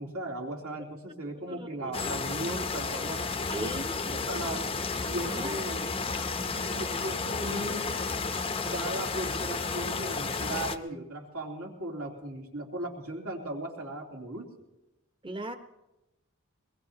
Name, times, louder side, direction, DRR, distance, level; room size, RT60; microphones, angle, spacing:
voice 1, 0.0-3.2 3.5-3.8 4.1-4.7 5.1-5.9 6.4-8.0 8.6-14.5, right 1 dB, 80° right, -1 dB, 3.0 m, -37 dB
voice 2, 1.5-1.9 3.5-3.9 5.3-5.5 15.2-15.6, right 1 dB, 20° right, 8 dB, 0.9 m, -38 dB
sound 1, 1.9-10.8, left 4 dB, 25° left, 0.6 m, -32 dB
22.5 x 21.0 x 2.8 m, 0.97 s
head